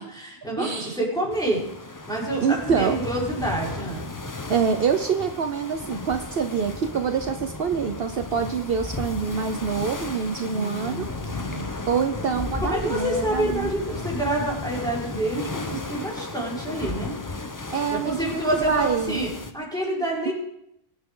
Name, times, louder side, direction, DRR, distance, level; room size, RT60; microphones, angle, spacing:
voice 1, 0.0-1.6 2.1-4.1 10.4-11.7 12.6-17.2 17.9-19.3 19.5-20.3, right 1 dB, 5° left, -5 dB, 5.0 m, -28 dB
voice 2, 0.6-1.0 2.4-3.0 4.5-11.1 11.4-11.5 11.9-13.7 17.7-19.2 20.3-20.4, right 6 dB, 65° right, 6 dB, 1.0 m, -26 dB
sound 1, 1.3-19.5, left 3 dB, 20° left, 0.8 m, -34 dB
23.0 x 9.8 x 3.8 m, 0.80 s
omnidirectional pair, 1.1 m